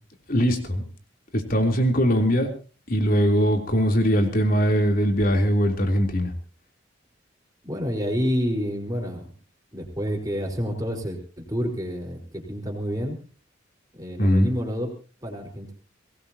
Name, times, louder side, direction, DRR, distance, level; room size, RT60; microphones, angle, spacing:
voice 1, 0.3-0.8 1.3-2.5 2.9-6.3 14.2-14.5, equal, 45° left, 4 dB, 3.5 m, -21 dB
voice 2, 7.6-9.3 9.7-13.2 13.9-14.9 15.2-15.7, equal, 20° right, 2 dB, 4.7 m, -29 dB
23.0 x 19.0 x 2.9 m, 0.36 s
head